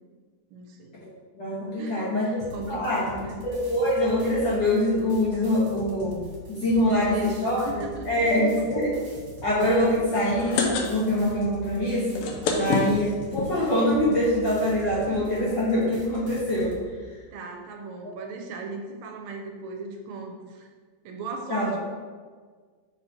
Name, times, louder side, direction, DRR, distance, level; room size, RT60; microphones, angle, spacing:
voice 1, 0.5-1.0 1.8-3.4 6.9-8.6 15.0-15.4 17.3-20.7 21.0-21.8, right 4 dB, 80° right, 3 dB, 1.9 m, -38 dB
voice 2, 1.3-2.4 2.7-3.0 3.4-6.2 6.5-8.9 9.4-12.2 12.5-16.8 18.0-18.2 21.5-21.8, left 1 dB, 55° left, -7 dB, 1.4 m, -24 dB
sound 1, 2.4-16.8, right 1 dB, 55° right, 1.7 m, -43 dB
sound 2, 10.2-11.3 11.6-11.7 12.0-13.5 14.2-14.3 14.5-14.6 14.8-15.0, left 4 dB, 80° left, 1.2 m, -26 dB
6.2 x 4.4 x 4.3 m, 1.6 s
omnidirectional pair, 3.3 m